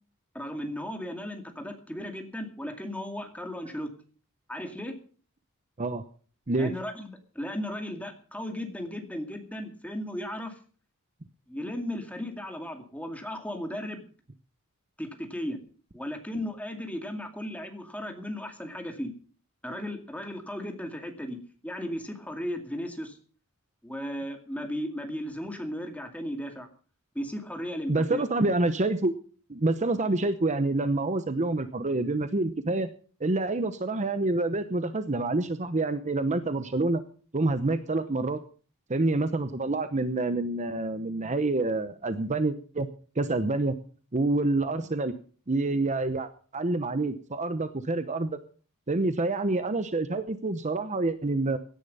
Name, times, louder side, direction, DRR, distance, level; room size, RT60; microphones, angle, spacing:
voice 1, 0.3-3.9 4.5-4.9 6.6-10.5 11.5-14.0 15.0-15.6 15.9-19.1 19.6-21.4 21.6-23.2 23.8-26.7 27.1-28.2, equal, 5° left, 4 dB, 2.3 m, -35 dB
voice 2, 27.9-29.1 29.5-32.9 33.2-37.0 37.3-38.4 38.9-42.9 43.2-43.7 44.1-45.1 45.5-48.4 48.9-51.6, right 2 dB, 30° right, 10 dB, 0.8 m, -27 dB
17.0 x 10.5 x 5.5 m, 0.41 s
head